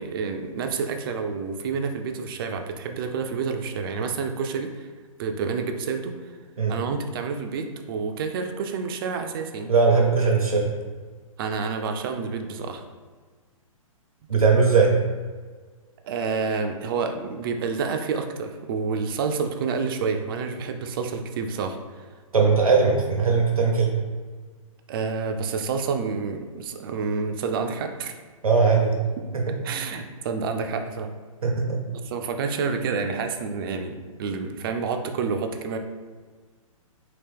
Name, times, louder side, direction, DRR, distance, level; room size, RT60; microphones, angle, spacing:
voice 1, 0.0-4.9 5.2-6.1 6.7-9.7 11.4-12.8 16.0-22.0 24.9-28.1 29.6-31.1 32.0-35.8, right 5 dB, 40° right, 6 dB, 0.4 m, -29 dB
voice 2, 9.7-10.7 14.3-15.0 22.3-23.9 28.4-29.0 31.4-31.8, right 4 dB, 85° right, 0 dB, 0.7 m, -19 dB
2.9 x 2.9 x 3.4 m, 1.5 s
figure-of-eight pair, 125°, 18 cm